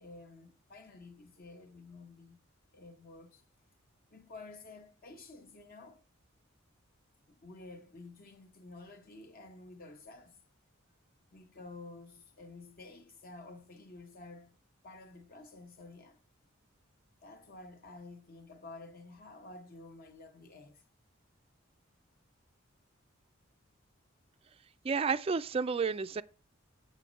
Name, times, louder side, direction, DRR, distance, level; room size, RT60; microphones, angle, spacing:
voice 1, 0.0-2.4 2.7-3.4 4.1-6.0 7.3-10.4 11.3-14.5 14.8-16.2 17.2-20.8, left 3 dB, 45° left, 1.2 m, -51 dB
voice 2, 24.8-26.2, right 5 dB, 30° right, 0.3 m, -31 dB
8.4 x 5.4 x 5.1 m
head